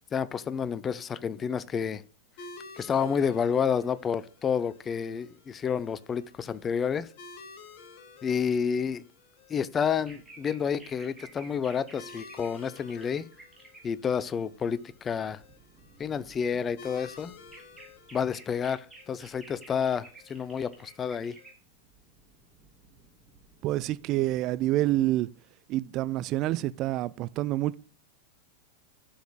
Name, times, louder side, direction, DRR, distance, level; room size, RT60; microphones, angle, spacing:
voice 1, 0.1-2.0 2.8-7.1 8.2-9.0 9.5-13.3 13.8-15.4 16.0-17.3 18.1-21.4, left 7 dB, 20° left, 0.5 m, -29 dB
sound 1, 2.4-21.5, left 4 dB, 50° left, 1.2 m, -53 dB
sound 2, 9.8-13.8 14.1-25.0, right 3 dB, 10° right, 2.7 m, -54 dB
voice 2, 23.6-25.3 25.7-27.8, right 15 dB, 40° right, 0.3 m, -27 dB
11.0 x 7.1 x 2.2 m
figure-of-eight pair, 90°, 0 cm